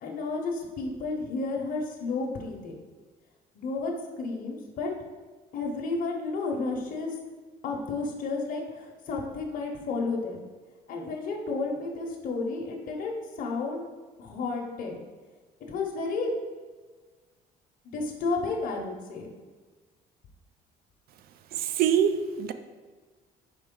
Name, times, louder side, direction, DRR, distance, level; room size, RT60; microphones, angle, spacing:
voice 1, 0.0-2.8 3.5-4.9 5.5-7.2 7.6-10.4 10.9-13.9 14.2-15.0 15.7-16.3 17.9-19.3, left 3 dB, 55° left, 0 dB, 0.7 m, -32 dB
voice 2, 21.5-22.5, right 8 dB, 65° right, 10 dB, 0.4 m, -25 dB
4.5 x 3.1 x 3.7 m, 1.4 s
cardioid pair, 110°, 17 cm